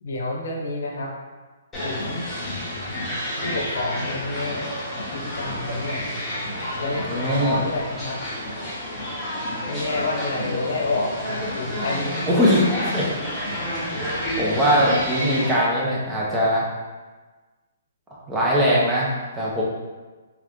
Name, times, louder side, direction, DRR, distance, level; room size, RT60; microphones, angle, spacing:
voice 1, 0.0-1.1 1.8-2.2 3.4-6.0 6.8-8.2 9.7-12.2, left 2 dB, 60° left, 0 dB, 0.8 m, -29 dB
sound 1, 1.7-15.5, equal, 5° left, 1.2 m, -29 dB
voice 2, 7.1-7.6 12.3-13.1 14.4-16.6 18.3-19.6, equal, 10° right, -5 dB, 0.7 m, -21 dB
3.6 x 3.1 x 3.6 m, 1.3 s
hypercardioid pair, 170°, 0 cm